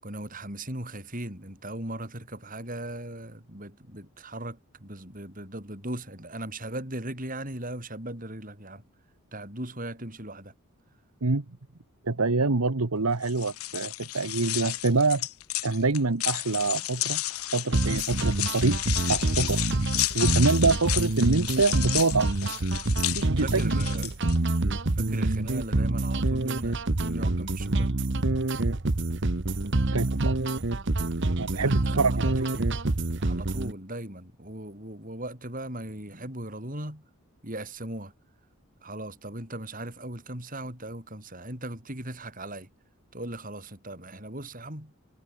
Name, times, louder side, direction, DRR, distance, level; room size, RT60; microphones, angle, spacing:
voice 1, 0.0-8.9 9.3-10.5 23.4-24.2 24.9-27.9 31.4-32.7 33.2-37.0 37.4-38.1 38.8-42.7 43.1-44.9, right 1 dB, 40° right, 7.3 m, -38 dB
voice 2, 12.1-15.3 15.6-17.2 17.5-18.8 19.1-19.6 20.1-22.5 23.1-23.8 29.9-30.4 31.4-32.4, right 3 dB, 85° right, 1.3 m, -25 dB
sound 1, 13.2-24.4, left 16 dB, 80° left, 0.7 m, -32 dB
sound 2, 17.7-33.7, right 2 dB, 55° right, 1.1 m, -27 dB
head